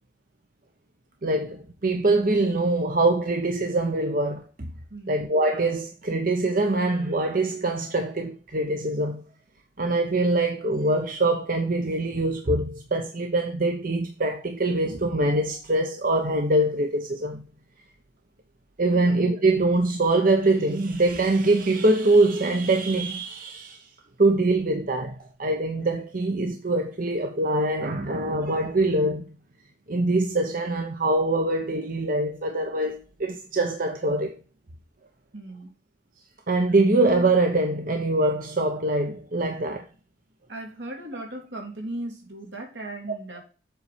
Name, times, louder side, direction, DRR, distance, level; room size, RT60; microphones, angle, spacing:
voice 1, 1.2-4.7 5.1-9.2 9.8-17.4 18.8-23.8 24.2-29.3 29.9-34.3 36.5-39.9, right 2 dB, 50° right, 0.8 m, -23 dB
voice 2, 35.3-35.7 40.5-43.4, right 1 dB, 75° right, 2.6 m, -37 dB
7.9 x 4.2 x 4.9 m
head